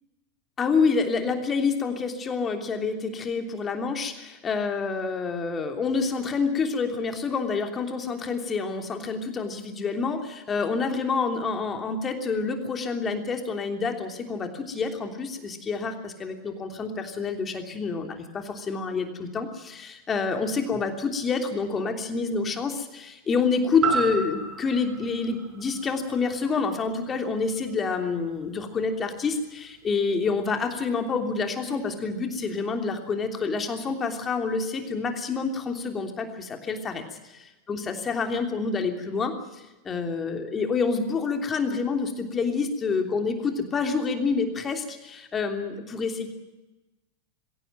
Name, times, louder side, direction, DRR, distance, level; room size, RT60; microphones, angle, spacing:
voice 1, 0.6-37.0 37.7-46.3, left 4 dB, 20° left, 5 dB, 3.2 m, -28 dB
sound 1, 23.8-27.9 28.3-28.4, right 6 dB, 35° right, 7.4 m, -32 dB
22.5 x 16.5 x 9.1 m, 1.1 s
figure-of-eight pair, 90°, 0 cm